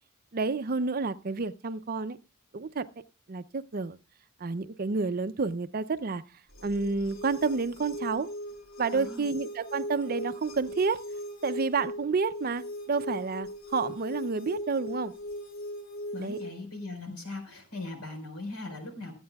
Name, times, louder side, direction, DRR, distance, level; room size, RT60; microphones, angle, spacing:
voice 1, 0.3-2.2 2.5-2.9 3.3-4.0 4.4-6.2 6.6-8.3 8.8-11.0 11.4-15.1 16.2-16.4, right 4 dB, 40° right, 14 dB, 0.5 m, -30 dB
sound 1, 6.5-16.5, equal, 65° left, 2.5 m, -39 dB
voice 2, 8.9-9.3 16.1-19.1, left 2 dB, 90° left, 5 dB, 4.5 m, -39 dB
23.0 x 8.8 x 2.3 m, 0.30 s
head